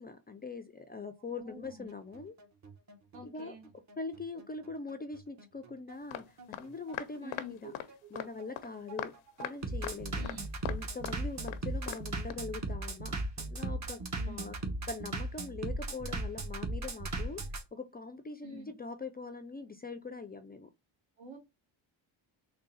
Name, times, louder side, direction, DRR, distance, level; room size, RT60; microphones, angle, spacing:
voice 1, 0.0-2.4 3.2-3.5 4.0-7.7 8.1-9.1 9.4-10.3 10.7-14.6 14.9-17.4 17.7-20.7, left 4 dB, 20° left, 0.3 m, -42 dB
voice 2, 1.2-1.8 3.1-3.7 7.2-7.5 10.1-10.5 14.1-14.5 18.4-18.7 21.2-21.4, right 2 dB, 75° right, 1.6 m, -48 dB
Bass drum, 1.6-17.6, right 2 dB, 35° right, 1.0 m, -37 dB
sound 1, 6.1-6.2 6.5-6.6 6.9-7.5 7.7-7.9 8.2-8.3 8.6-8.7 9.0-9.1 9.4-9.5 9.8-10.0 10.2-10.8 11.0-11.2 11.5-11.6 11.9-12.0 12.3-12.4, left 12 dB, 85° left, 0.6 m, -38 dB
3.7 x 2.1 x 3.9 m
cardioid pair, 85°, 47 cm